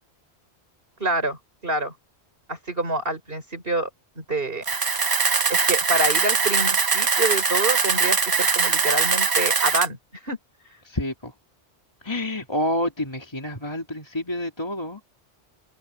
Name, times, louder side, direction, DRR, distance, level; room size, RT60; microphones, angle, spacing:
voice 1, 1.0-1.4 1.6-1.9 2.5-3.9 4.2-4.6 5.5-10.0 10.2-10.4, right 2 dB, 55° right, 5.3 m, -26 dB
Camera, 4.6-9.9, right 5 dB, 30° right, 0.4 m, -21 dB
voice 2, 10.8-11.3 12.0-15.0, left 1 dB, 25° left, 2.7 m, -28 dB
open air
omnidirectional pair, 1.1 m